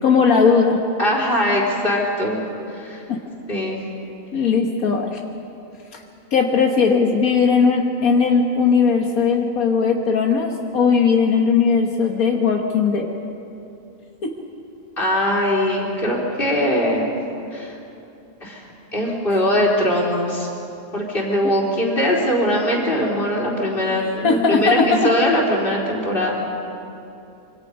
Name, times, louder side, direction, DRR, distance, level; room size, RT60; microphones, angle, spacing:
voice 1, 0.0-0.8 3.1-3.2 4.3-5.2 5.9-6.0 6.3-13.1 14.2-14.3 21.4-21.5 24.2-25.1, left 5 dB, 85° left, 1 dB, 1.8 m, -18 dB
voice 2, 1.0-2.4 2.7-3.0 3.5-3.8 15.0-17.1 17.5-17.7 18.4-18.6 18.9-20.5 20.9-26.5, equal, 40° left, -3 dB, 4.3 m, -21 dB
26.0 x 24.0 x 5.3 m, 2.8 s
omnidirectional pair, 1.5 m